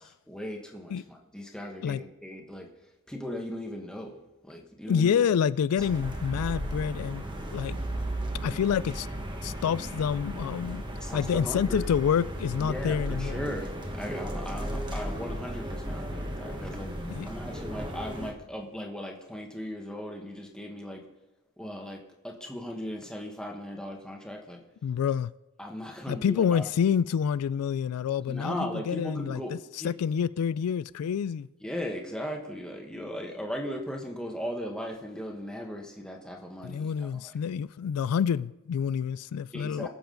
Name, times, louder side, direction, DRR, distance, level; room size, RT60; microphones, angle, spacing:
voice 1, 0.3-2.7 3.1-4.2 4.4-5.5 11.0-11.9 12.6-17.0 17.2-21.1 21.6-24.6 25.6-26.7 28.3-29.9 31.6-37.1 39.5-39.9, equal, 5° left, 1.3 m, -37 dB
voice 2, 4.9-7.2 7.5-7.8 8.4-9.1 9.4-10.8 11.1-13.5 17.1-17.3 24.8-25.3 26.1-29.4 29.7-31.5 36.6-39.9, left 7 dB, 85° left, 0.3 m, -28 dB
sound 1, 5.8-18.3, right 1 dB, 20° right, 1.3 m, -35 dB
20.5 x 7.0 x 3.9 m
head